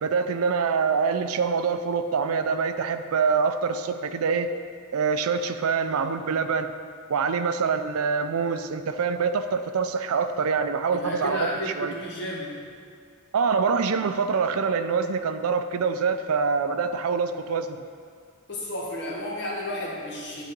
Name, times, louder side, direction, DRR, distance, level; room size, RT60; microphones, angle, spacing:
voice 1, 0.0-4.5 4.9-6.7 7.1-11.5 11.8-11.9 13.3-17.8, right 5 dB, 75° right, 9 dB, 0.4 m, -25 dB
voice 2, 10.9-12.6 18.5-20.4, left 1 dB, 55° left, -3 dB, 1.5 m, -32 dB
10.0 x 4.0 x 5.2 m, 2.1 s
head